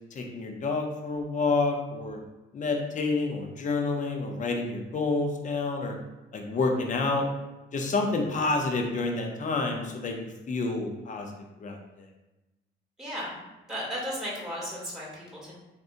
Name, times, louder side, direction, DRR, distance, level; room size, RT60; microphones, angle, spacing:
voice 1, 0.1-2.2 2.5-6.0 6.3-7.3 7.7-11.3 11.6-11.8, left 3 dB, 40° left, 2 dB, 0.6 m, -28 dB
voice 2, 13.0-15.5, equal, 5° right, -5 dB, 1.2 m, -35 dB
3.7 x 2.6 x 2.5 m, 1.0 s
cardioid pair, 90°, 20 cm